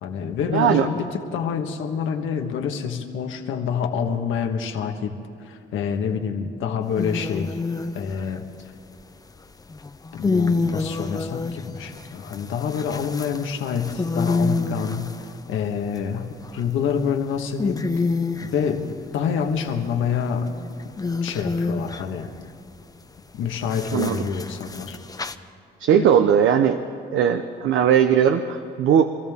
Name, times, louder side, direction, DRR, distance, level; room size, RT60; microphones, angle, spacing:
voice 1, 0.0-5.1 5.4-7.6 7.9-8.5 10.1-17.9 18.4-20.6 21.2-22.3 23.3-25.0 25.9-26.0, left 7 dB, 85° left, 4 dB, 1.4 m, -27 dB
voice 2, 0.5-0.9 23.9-24.2 25.8-26.8 27.1-29.1, right 8 dB, 75° right, 8 dB, 0.7 m, -18 dB
sound 1, 7.0-8.4 9.7-15.6 16.2-16.8 17.3-17.4 17.6-18.5 19.8-22.2 23.7-25.4, left 3 dB, 20° left, 0.6 m, -28 dB
26.0 x 14.0 x 3.6 m, 2.7 s
cardioid pair, 90°, 20 cm